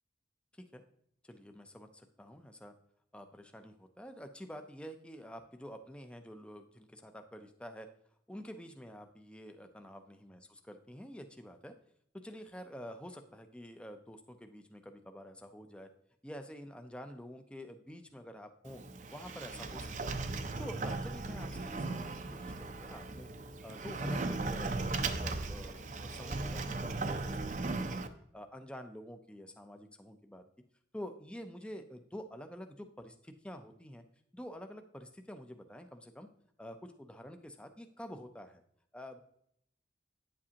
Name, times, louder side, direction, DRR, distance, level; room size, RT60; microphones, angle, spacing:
voice 1, 1.2-2.7 3.1-7.9 8.3-11.7 12.1-15.9 16.2-18.8 19.1-20.2 20.6-23.3 23.6-28.0 28.3-30.4 30.9-34.0 34.3-36.3 36.6-38.6 38.9-39.2, equal, 5° left, 6 dB, 0.5 m, -48 dB
Sliding door, 18.6-28.1, right 3 dB, 45° right, 0.5 m, -37 dB
9.4 x 7.4 x 2.8 m, 0.69 s
head